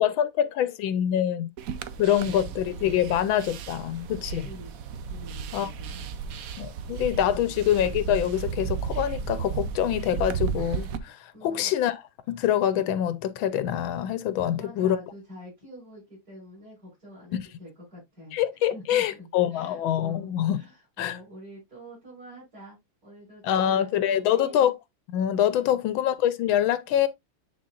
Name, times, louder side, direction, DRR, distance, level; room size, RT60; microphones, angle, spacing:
voice 1, 0.0-1.5 2.0-4.5 5.5-5.7 6.6-12.0 12.3-15.0 17.3-17.4 18.3-20.6 21.0-21.2 23.4-24.7 25.1-27.1, left 10 dB, 80° left, 1.4 m, -25 dB
sound 1, 1.6-11.0, right 7 dB, 75° right, 0.7 m, -34 dB
voice 2, 4.4-4.8 5.1-6.3 7.3-7.6 11.3-11.7 14.4-18.4 18.7-24.7 25.6-25.8, equal, 45° right, 5.7 m, -47 dB
9.4 x 4.2 x 2.4 m
omnidirectional pair, 2.3 m